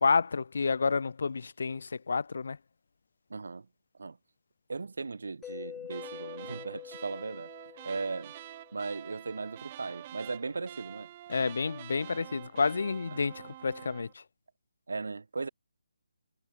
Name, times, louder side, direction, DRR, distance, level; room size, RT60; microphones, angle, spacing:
voice 1, 0.0-2.6 11.3-14.1, left 4 dB, 60° left, 1.4 m, -29 dB
voice 2, 3.3-3.7 4.0-4.2 4.7-7.5 7.8-8.3 8.7-11.1 11.4-11.5 13.1-13.3 14.9-15.5, right 4 dB, 75° right, 1.3 m, -37 dB
Mallet percussion, 5.4-9.2, left 9 dB, 5° left, 5.6 m, -46 dB
sound 1, 5.9-14.1, right 13 dB, 25° right, 6.6 m, -47 dB
hypercardioid pair, 170°, 0 cm